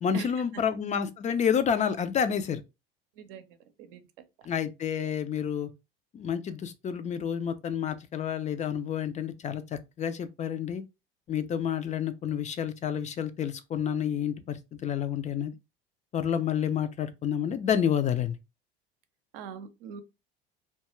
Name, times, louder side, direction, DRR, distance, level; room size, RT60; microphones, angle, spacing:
voice 1, 0.0-2.6 4.4-5.7 6.1-10.8 11.3-15.5 16.1-18.4, left 8 dB, 25° left, 0.3 m, -29 dB
voice 2, 3.2-4.0 19.3-20.0, right 7 dB, 70° right, 0.6 m, -42 dB
2.3 x 2.3 x 2.9 m
hypercardioid pair, 70°, 30 cm